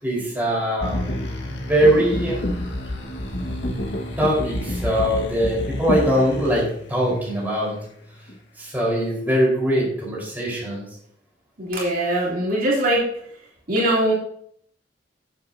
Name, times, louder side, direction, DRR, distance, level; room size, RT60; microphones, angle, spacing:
voice 1, 0.0-1.0 1.5-2.4 4.2-7.7 8.6-10.8, right 1 dB, 10° right, -4 dB, 4.5 m, -22 dB
sound 1, 0.8-7.8 8.3-8.4, left 1 dB, 90° left, 1.7 m, -29 dB
voice 2, 11.6-13.0 13.7-14.1, right 1 dB, 50° right, -5 dB, 3.2 m, -21 dB
14.0 x 7.8 x 2.8 m, 0.65 s
head